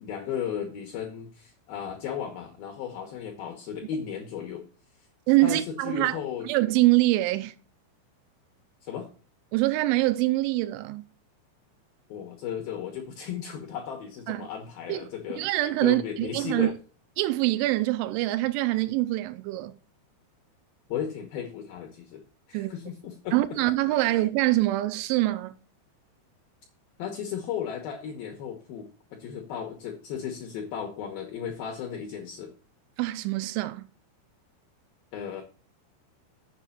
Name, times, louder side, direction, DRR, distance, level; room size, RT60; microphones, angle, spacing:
voice 1, 0.0-4.7 5.4-6.5 8.8-9.1 12.1-15.4 15.8-16.7 20.9-22.2 22.5-23.4 24.0-24.2 27.0-32.5 35.1-35.4, left 8 dB, 70° left, 2.4 m, -35 dB
voice 2, 5.3-6.2 6.4-7.5 9.5-11.1 14.3-14.5 14.9-15.0 15.4-16.7 17.2-19.8 22.5-22.7 23.3-25.6 33.0-33.9, right 18 dB, 80° right, 2.9 m, -24 dB
7.6 x 5.5 x 7.2 m
omnidirectional pair, 5.6 m